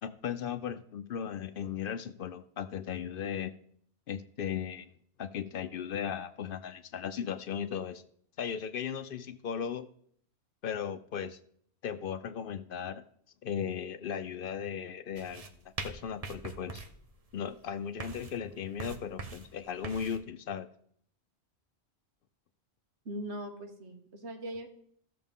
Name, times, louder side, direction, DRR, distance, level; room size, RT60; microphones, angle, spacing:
voice 1, 0.0-3.5 4.1-4.9 5.2-8.0 8.4-9.9 10.6-11.4 11.8-13.0 13.4-16.8 17.3-20.7, left 8 dB, 60° left, 11 dB, 0.6 m, -37 dB
sound 1, 15.2-20.2, right 3 dB, 35° right, 0.9 m, -43 dB
voice 2, 23.0-24.7, right 1 dB, 80° right, 4 dB, 1.7 m, -40 dB
15.5 x 6.7 x 3.6 m, 0.63 s
omnidirectional pair, 1.1 m